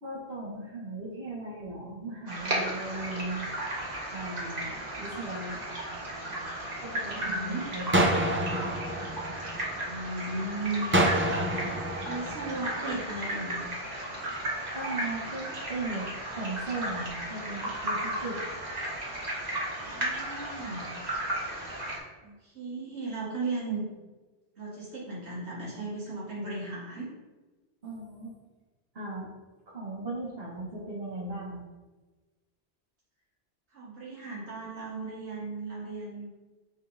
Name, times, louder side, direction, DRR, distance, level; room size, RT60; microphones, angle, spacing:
voice 1, 0.0-3.5 4.1-5.6 6.8-8.3 14.7-18.4 27.8-28.3 28.9-29.3 29.7-31.6, right 2 dB, 65° right, -6 dB, 1.9 m, -37 dB
sound 1, 2.3-22.0, right 1 dB, 40° right, 1.5 m, -35 dB
voice 2, 7.1-7.7 9.9-11.1 11.7-11.8 12.0-13.6 19.8-20.9 22.2-23.9 24.6-27.1 33.7-36.3, right 2 dB, 85° right, -7 dB, 1.9 m, -36 dB
sound 2, 7.9-10.0 10.9-13.0, right 1 dB, 20° right, 0.4 m, -28 dB
9.3 x 3.7 x 2.7 m, 1.2 s
omnidirectional pair, 1.1 m